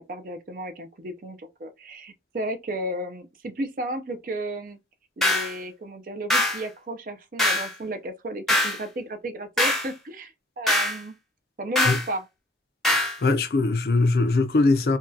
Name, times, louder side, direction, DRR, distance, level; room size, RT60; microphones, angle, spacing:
voice 1, 0.0-4.8 5.2-11.1 11.6-12.3, right 1 dB, 50° right, 0.5 m, -34 dB
sound 1, 5.2-5.5 6.3-6.6 7.4-7.7 8.5-8.8 9.6-9.9 10.7-11.0 11.8-12.1 12.8-13.2, left 1 dB, ahead, 0.7 m, -22 dB
voice 2, 12.9-15.0, left 3 dB, 60° left, 0.4 m, -21 dB
3.5 x 2.2 x 2.6 m
head